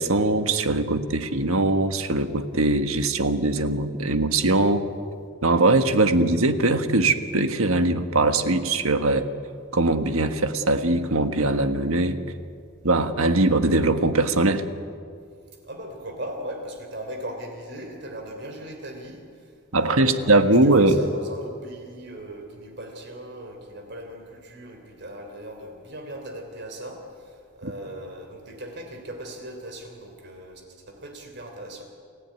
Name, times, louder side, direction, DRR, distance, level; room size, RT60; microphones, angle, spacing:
voice 1, 0.0-4.9 5.4-9.3 9.7-12.2 12.8-14.6 19.7-21.0, right 2 dB, 85° right, 8 dB, 1.5 m, -21 dB
voice 2, 15.6-19.2 19.7-31.8, right 1 dB, 50° right, 4 dB, 3.3 m, -38 dB
29.0 x 16.0 x 9.5 m, 2.3 s
head